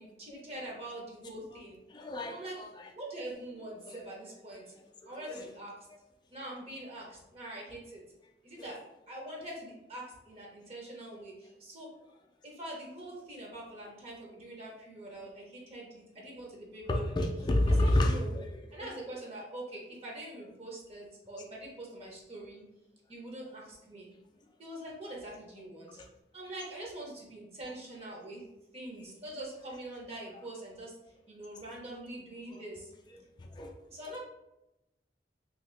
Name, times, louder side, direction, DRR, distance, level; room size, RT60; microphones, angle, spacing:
voice 1, 0.0-1.8 2.3-2.6 2.9-4.6 5.1-5.7 6.3-8.0 8.4-8.8 9.1-11.9 12.4-17.1 17.8-18.4 18.7-22.6 23.1-24.1 24.6-26.0 26.3-28.4 28.7-30.9 31.3-32.9 33.9-34.2, right 1 dB, 35° right, -3 dB, 0.7 m, -44 dB
voice 2, 1.9-2.9 3.9-4.0 5.0-5.4 8.6-8.8 16.9-18.5 18.8-18.9 26.0-26.1 32.5-32.6 33.4-33.8, left 1 dB, 25° left, 2 dB, 0.4 m, -30 dB
2.8 x 2.7 x 3.2 m, 0.94 s
head